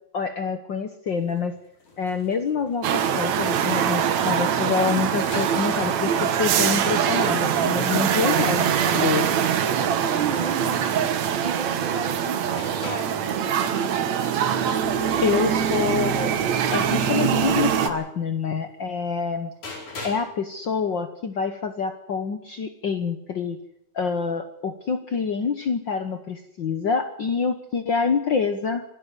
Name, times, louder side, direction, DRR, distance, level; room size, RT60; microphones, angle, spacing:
voice 1, 0.1-1.5 2.0-9.3 15.2-16.3 16.7-19.5 20.0-23.6 23.9-28.8, left 5 dB, 55° left, 9 dB, 1.4 m, -26 dB
sound 1, 1.1-11.8 12.1-20.4 20.7-20.8, left 3 dB, 85° left, 6.3 m, -45 dB
Brooklyn Residential Street, 2.8-17.9, right 8 dB, 70° right, 2.6 m, -23 dB
voice 2, 9.7-10.9 11.4-14.1, right 5 dB, 50° right, 10 dB, 1.8 m, -34 dB
26.0 x 13.0 x 8.1 m, 0.79 s
omnidirectional pair, 3.3 m